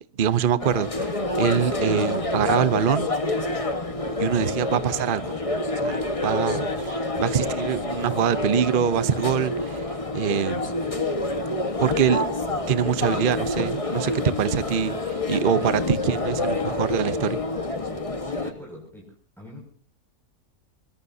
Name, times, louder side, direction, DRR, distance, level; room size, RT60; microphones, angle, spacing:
voice 1, 0.2-3.1 4.2-5.4 5.8-10.8 11.8-12.2 12.7-17.4, right 8 dB, 40° right, 0.9 m, -24 dB
sound 1, 0.6-18.5, left 2 dB, 20° left, 1.4 m, -27 dB
voice 2, 17.9-19.6, equal, ahead, 6.4 m, -44 dB
23.0 x 22.0 x 2.8 m
omnidirectional pair, 1.6 m